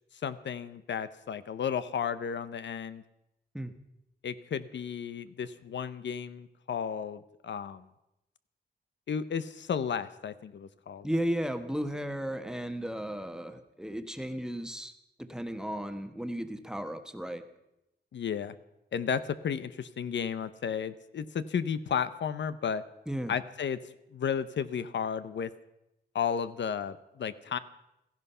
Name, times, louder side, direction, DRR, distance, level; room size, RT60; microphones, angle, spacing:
voice 1, 0.2-3.0 4.2-7.9 9.1-11.1 18.1-18.6 18.9-22.8 23.3-23.8 24.1-25.5 26.1-27.6, left 7 dB, 90° left, 14 dB, 0.8 m, -33 dB
voice 2, 11.0-14.9 15.2-17.4 23.1-23.3, equal, 5° right, 8 dB, 1.1 m, -34 dB
16.5 x 15.0 x 5.6 m, 0.88 s
wide cardioid pair, 145°, 18 cm